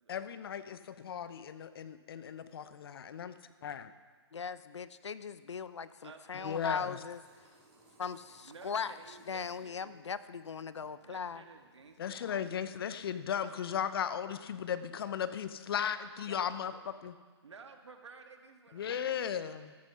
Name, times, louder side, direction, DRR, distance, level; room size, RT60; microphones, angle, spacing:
voice 1, 0.1-3.9 6.4-7.0 12.0-17.1 18.7-19.8, left 8 dB, 55° left, 12 dB, 0.8 m, -36 dB
voice 2, 4.3-7.2 8.0-8.9 9.3-11.4, left 6 dB, 90° left, 15 dB, 0.7 m, -39 dB
voice 3, 6.0-6.7 8.4-9.9 11.0-12.3 16.2-16.9 17.4-19.7, right 4 dB, 85° right, 5 dB, 1.7 m, -54 dB
sound 1, 6.7-13.8, right 2 dB, 25° right, 4.4 m, -65 dB
13.5 x 9.9 x 5.7 m, 1.5 s
hypercardioid pair, 145°, 14 cm